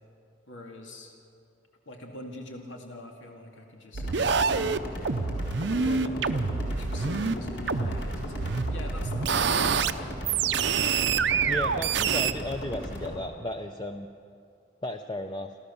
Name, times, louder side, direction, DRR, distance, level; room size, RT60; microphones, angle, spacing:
voice 1, 0.5-1.1 1.9-4.1 5.4-10.2, left 1 dB, 85° left, 2 dB, 2.3 m, -42 dB
sound 1, 3.9-13.1, equal, 65° left, 4.0 m, -37 dB
sound 2, 3.9-7.4 7.7-9.9 10.2-12.3, right 6 dB, 70° right, 0.6 m, -27 dB
voice 2, 11.5-14.1 14.8-15.6, left 1 dB, 25° left, 5 dB, 0.6 m, -34 dB
28.5 x 13.0 x 7.1 m, 2.5 s
head